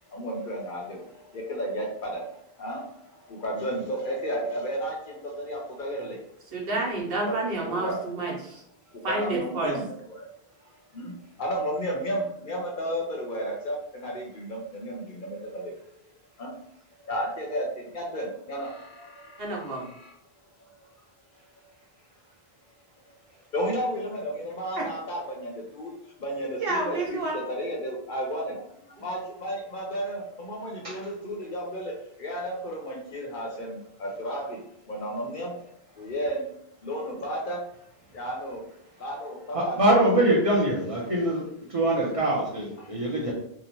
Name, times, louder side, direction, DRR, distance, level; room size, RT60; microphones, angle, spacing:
voice 1, 0.1-2.8 3.1-6.2 6.7-6.8 7.2-8.0 9.0-10.3 10.9-15.8 16.4-16.5 17.0-20.1 23.5-25.9 26.2-31.9 32.2-34.6 34.9-35.7 36.0-36.5 36.8-37.6 38.1-38.6 39.0-39.8 42.8-42.9, equal, 55° left, 0.8 m, -33 dB
voice 2, 6.5-8.6 9.0-9.7 19.4-19.9 24.8-24.9 26.6-27.3, right 2 dB, 65° right, 0.9 m, -29 dB
voice 3, 39.5-41.4 41.7-43.3, right 1 dB, 40° right, 0.6 m, -23 dB
2.7 x 2.1 x 2.9 m
omnidirectional pair, 1.1 m